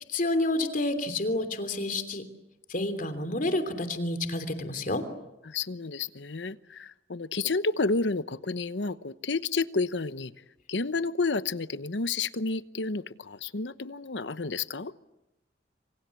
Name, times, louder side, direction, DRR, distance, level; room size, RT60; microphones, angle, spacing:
voice 1, 0.1-2.2 2.7-5.1, left 2 dB, 50° left, 9 dB, 3.1 m, -29 dB
voice 2, 5.4-10.3 10.7-14.9, left 3 dB, 75° left, 14 dB, 1.0 m, -30 dB
27.0 x 26.5 x 8.3 m, 0.95 s
head